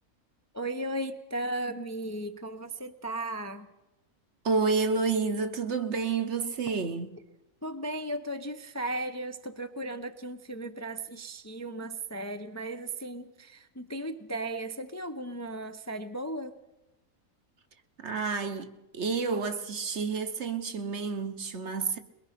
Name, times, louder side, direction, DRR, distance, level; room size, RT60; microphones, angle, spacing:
voice 1, 0.5-3.7 7.6-16.5 18.1-18.2, right 1 dB, 15° left, 0.6 m, -36 dB
voice 2, 4.4-7.1 18.0-22.0, right 4 dB, 55° right, 1.3 m, -29 dB
22.0 x 22.0 x 5.8 m
omnidirectional pair, 1.5 m